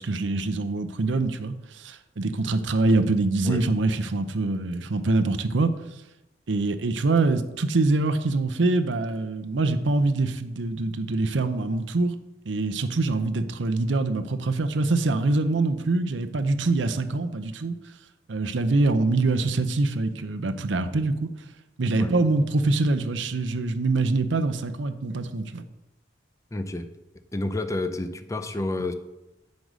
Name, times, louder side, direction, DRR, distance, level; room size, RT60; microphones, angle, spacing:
voice 1, 0.0-5.7 6.5-12.1 12.5-17.7 18.3-21.3 21.8-25.6, right 3 dB, 75° right, 0.6 m, -24 dB
voice 2, 26.5-26.8 27.3-28.9, left 2 dB, 15° left, 0.5 m, -29 dB
8.0 x 5.3 x 6.2 m
head